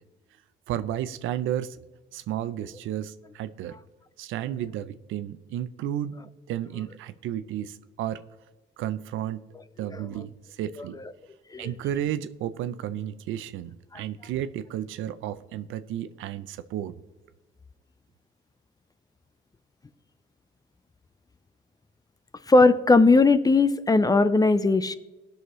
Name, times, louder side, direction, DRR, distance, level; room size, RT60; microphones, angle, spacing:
voice 1, 0.7-1.8 2.1-3.8 4.2-8.2 8.8-9.5 9.8-11.0 11.6-16.9, right 11 dB, 85° right, 13 dB, 0.5 m, -32 dB
voice 2, 22.5-25.0, left 3 dB, 20° left, 13 dB, 0.5 m, -19 dB
17.5 x 6.4 x 3.1 m, 1.1 s
cardioid pair, 90°, 20 cm